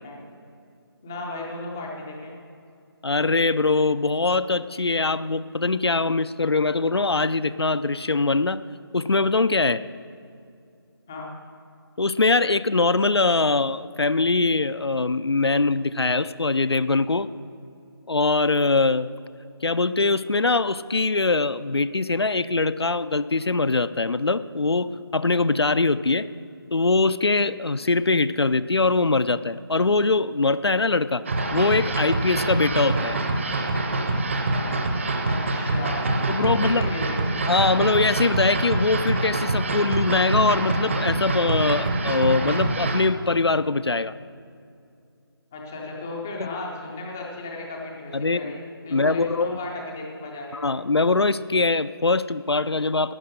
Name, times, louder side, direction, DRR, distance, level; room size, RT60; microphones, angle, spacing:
voice 1, 1.0-2.3 11.1-11.3 35.3-36.1 36.4-37.5 45.5-50.6, left 2 dB, 5° left, -1 dB, 0.4 m, -35 dB
voice 2, 3.0-8.6 8.9-9.8 12.0-17.3 18.1-19.1 19.6-26.3 26.7-31.2 31.5-33.2 36.3-36.9 37.4-44.1 46.4-46.5 48.1-48.5 48.9-49.6 50.5-53.1, left 3 dB, 80° left, 14 dB, 0.4 m, -22 dB
sound 1, 31.3-43.0, right 2 dB, 30° right, 0.8 m, -25 dB
11.5 x 8.6 x 6.4 m, 2.4 s
figure-of-eight pair, 155°, 13 cm